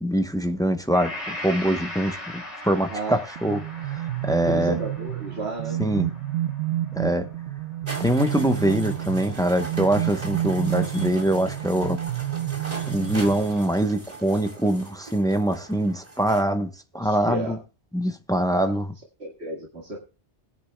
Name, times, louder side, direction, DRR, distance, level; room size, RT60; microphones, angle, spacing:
voice 1, 0.0-4.8 5.8-6.1 6.9-7.3 8.0-12.0 12.9-16.7 16.9-17.6 17.9-18.9, right 1 dB, 5° left, 0.7 m, -24 dB
Gong, 0.9-9.0, left 1 dB, 35° left, 3.4 m, -40 dB
voice 2, 2.9-3.2 4.5-5.8 17.0-17.6 18.5-18.7 19.2-20.0, right 2 dB, 65° right, 2.1 m, -32 dB
sound 1, 3.4-13.8, right 13 dB, 85° right, 1.0 m, -30 dB
sound 2, 7.9-16.4, right 2 dB, 35° right, 2.2 m, -39 dB
20.5 x 10.5 x 2.2 m
omnidirectional pair, 1.2 m